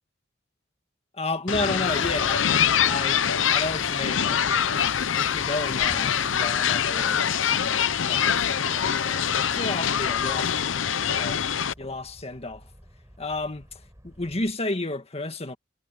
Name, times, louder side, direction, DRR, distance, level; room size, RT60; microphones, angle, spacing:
voice 1, 1.2-3.2 3.5-4.9 5.2-10.6 11.1-11.4 11.8-12.6 13.2-13.7 14.0-15.6, left 2 dB, 30° left, 1.9 m, -32 dB
sound 1, 1.5-11.7, left 8 dB, 80° left, 0.7 m, -24 dB
Thunder / Rain, 1.5-11.5, equal, ahead, 2.9 m, -48 dB
sound 2, 2.0-14.5, equal, 15° right, 7.3 m, -51 dB
head